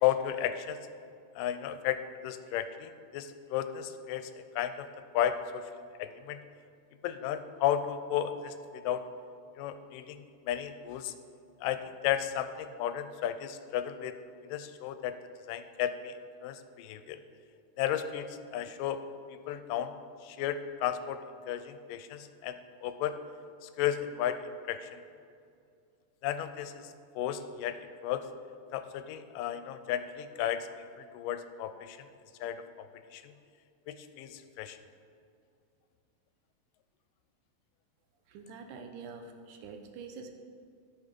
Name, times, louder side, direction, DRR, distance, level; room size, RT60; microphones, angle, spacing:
voice 1, 0.0-0.8 1.4-4.9 5.1-6.4 7.0-9.0 9.6-11.1 11.6-14.2 14.4-15.2 15.5-17.2 17.8-19.0 19.3-20.0 20.2-23.2 23.6-24.4 24.7-25.0 26.2-28.2 28.7-30.7 31.0-32.1 32.4-33.3 33.9-34.8, left 10 dB, 85° left, 10 dB, 2.1 m, -34 dB
voice 2, 38.3-40.3, right 5 dB, 75° right, 5 dB, 2.0 m, -45 dB
13.5 x 5.8 x 5.2 m, 2.3 s
omnidirectional pair, 3.8 m